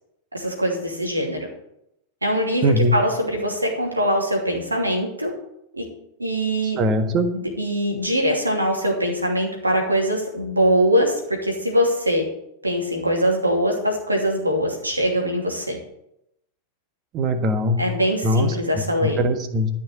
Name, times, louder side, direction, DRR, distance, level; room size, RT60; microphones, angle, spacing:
voice 1, 0.3-1.4 2.2-5.3 5.7-5.8 6.2-6.8 7.3-12.2 12.6-15.8 17.8-19.2, equal, 80° right, 1 dB, 2.8 m, -22 dB
voice 2, 6.8-7.3 17.1-17.8 18.2-18.5 19.2-19.7, equal, 35° right, 8 dB, 1.5 m, -20 dB
13.5 x 5.6 x 8.2 m, 0.80 s
figure-of-eight pair, 90°, 0 cm